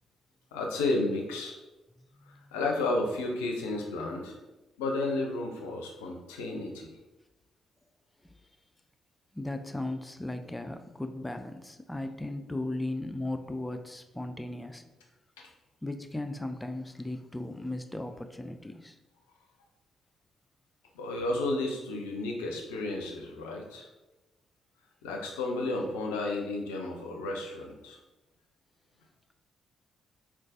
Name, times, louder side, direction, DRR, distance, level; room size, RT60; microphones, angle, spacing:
voice 1, 0.5-1.5 2.3-4.4 4.8-6.9 15.4-15.5 20.9-23.9 25.0-28.0, left 2 dB, 80° left, 1 dB, 0.4 m, -32 dB
voice 2, 2.0-2.5 8.2-8.4 9.3-14.8 15.8-19.0, left 2 dB, 15° left, 7 dB, 0.3 m, -37 dB
3.8 x 2.3 x 2.5 m, 1.0 s
hypercardioid pair, 40°, 0 cm